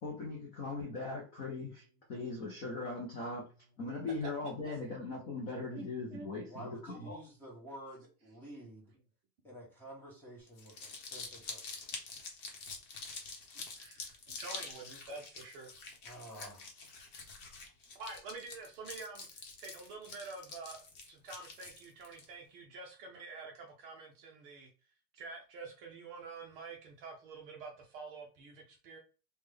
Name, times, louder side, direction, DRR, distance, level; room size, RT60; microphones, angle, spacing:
voice 1, 0.0-3.4 3.8-7.2, left 3 dB, 20° left, -2 dB, 0.4 m, -40 dB
voice 2, 6.4-8.9 9.4-11.7 16.0-16.7, equal, 5° left, -4 dB, 0.9 m, -50 dB
Crumpling crinkling, 10.5-22.2, left 4 dB, 45° left, 0.9 m, -46 dB
voice 3, 14.4-15.7 17.9-24.7 25.1-29.0, right 3 dB, 35° right, 1 dB, 0.5 m, -47 dB
3.4 x 2.2 x 3.2 m, 0.35 s
supercardioid pair, 145°, 50 cm